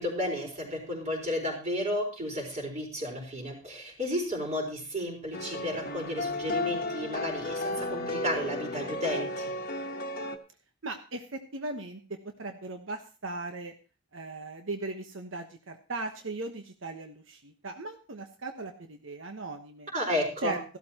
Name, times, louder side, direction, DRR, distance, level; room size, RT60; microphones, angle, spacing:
voice 1, 0.0-9.5 19.9-20.5, left 1 dB, 40° right, 1 dB, 4.4 m, -33 dB
sound 1, 5.3-10.4, left 2 dB, 50° left, 1.1 m, -33 dB
voice 2, 10.8-13.7 14.1-19.9 20.4-20.8, right 3 dB, 90° right, 5 dB, 1.2 m, -38 dB
15.0 x 12.5 x 2.9 m, 0.34 s
head